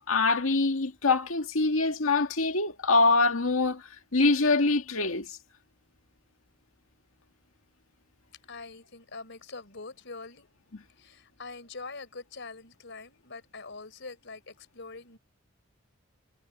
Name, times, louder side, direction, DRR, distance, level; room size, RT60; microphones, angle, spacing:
voice 1, 0.1-3.8 4.1-5.4, left 3 dB, 85° left, 2.0 m, -24 dB
voice 2, 8.5-10.5 11.0-15.2, left 3 dB, 60° left, 4.5 m, -44 dB
head